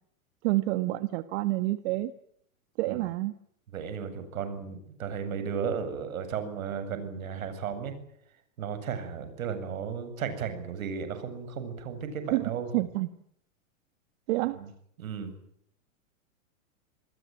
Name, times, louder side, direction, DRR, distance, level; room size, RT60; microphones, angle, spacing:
voice 1, 0.4-2.1 2.8-3.3 12.3-13.1 14.3-14.6, right 19 dB, 50° right, 13 dB, 1.5 m, -28 dB
voice 2, 3.7-8.0 8.6-12.7 14.5-14.7 15.0-15.3, right 7 dB, 75° right, 10 dB, 7.8 m, -34 dB
27.5 x 21.5 x 9.2 m, 0.71 s
hypercardioid pair, 120°, 42 cm